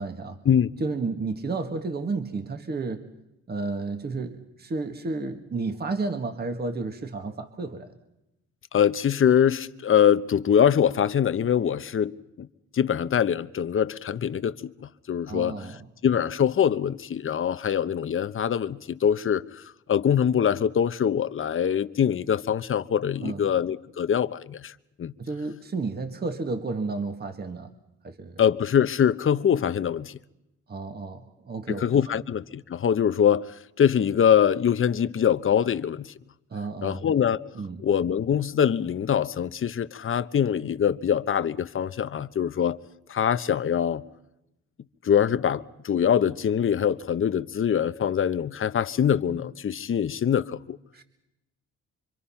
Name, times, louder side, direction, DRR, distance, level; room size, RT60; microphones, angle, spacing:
voice 1, 0.0-0.4 0.8-3.1 3.5-7.9 15.3-15.9 23.2-23.4 25.2-27.7 28.0-28.4 30.7-32.2 36.5-37.1 37.6-37.8 50.9-51.0, right 3 dB, 30° right, 1.7 m, -32 dB
voice 2, 8.7-12.5 12.7-15.6 16.0-19.6 19.9-25.1 28.4-30.2 31.7-36.1 36.8-37.4 37.8-42.8 43.1-44.0 45.0-50.8, left 8 dB, 45° left, 1.0 m, -23 dB
25.5 x 25.5 x 5.8 m
cardioid pair, 90°, 30 cm